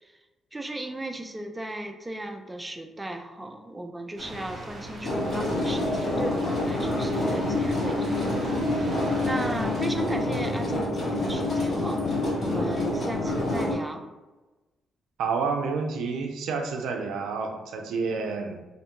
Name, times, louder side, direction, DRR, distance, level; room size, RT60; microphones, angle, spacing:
voice 1, 0.5-12.0 12.4-14.0, right 1 dB, 10° right, 5 dB, 0.3 m, -36 dB
sound 1, 4.2-9.9, right 1 dB, 45° right, 0.9 m, -41 dB
sound 2, 5.0-13.7, left 2 dB, 50° left, 1.0 m, -27 dB
voice 2, 15.2-18.6, right 5 dB, 85° right, 3 dB, 0.4 m, -29 dB
2.6 x 2.1 x 2.9 m, 1.1 s
cardioid pair, 95°, 0 cm